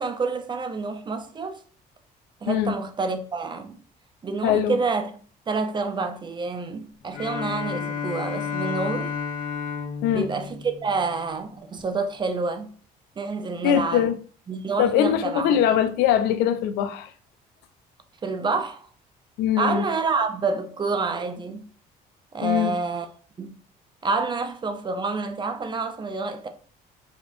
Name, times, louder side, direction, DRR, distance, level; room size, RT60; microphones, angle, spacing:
voice 1, 0.0-1.6 2.4-3.8 4.2-5.1 5.5-9.1 10.1-12.7 13.2-14.1 14.5-15.6 18.2-18.9 19.6-21.6 22.3-23.1 23.4-23.6 24.0-26.5, right 4 dB, 25° right, 0.5 m, -28 dB
voice 2, 4.4-4.8 10.0-10.3 13.6-14.1 14.8-17.1 19.4-19.8 22.4-22.8, left 10 dB, 90° left, 0.4 m, -22 dB
Bowed string instrument, 7.1-11.5, left 6 dB, 50° left, 0.6 m, -32 dB
5.0 x 2.5 x 2.6 m
cardioid pair, 110°, 17 cm